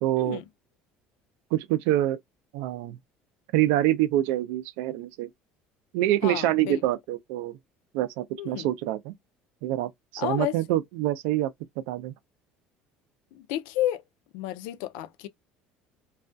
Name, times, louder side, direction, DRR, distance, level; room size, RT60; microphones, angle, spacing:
voice 1, 0.0-0.4 1.5-2.2 2.5-3.0 3.5-5.3 5.9-7.6 7.9-9.1 9.6-11.5 11.9-12.1, right 14 dB, 85° right, 0.4 m, -26 dB
voice 2, 6.2-6.8 8.4-8.7 10.2-10.5 13.3-14.0 14.3-15.3, left 13 dB, 90° left, 0.4 m, -31 dB
2.3 x 2.1 x 2.5 m
cardioid pair, 165°, 3 cm